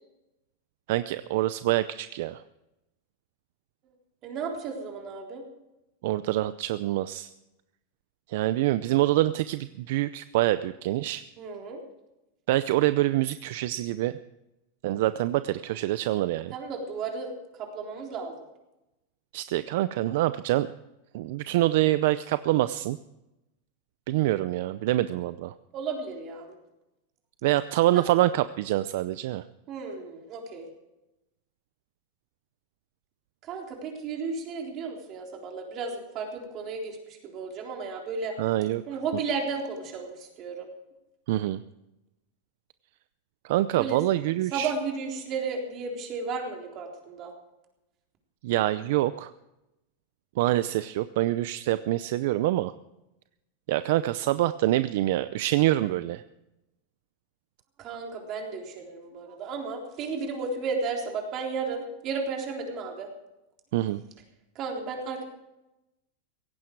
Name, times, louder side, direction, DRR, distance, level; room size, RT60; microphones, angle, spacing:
voice 1, 0.9-2.4 6.0-7.3 8.3-11.2 12.5-14.2 14.8-16.5 19.3-20.7 21.1-23.0 24.1-25.5 27.4-29.4 38.4-38.8 41.3-41.6 43.4-44.7 48.4-49.3 50.4-52.7 53.7-56.2 63.7-64.0, right 15 dB, 60° right, 13 dB, 0.5 m, -25 dB
voice 2, 4.2-5.5 11.4-11.8 16.5-18.3 25.7-26.6 27.9-28.1 29.7-30.7 33.4-38.4 38.9-40.7 43.7-44.0 44.5-47.3 57.8-63.1 64.6-65.2, right 4 dB, 35° right, 2 dB, 3.7 m, -34 dB
17.0 x 15.5 x 4.7 m, 0.94 s
supercardioid pair, 155°, 0 cm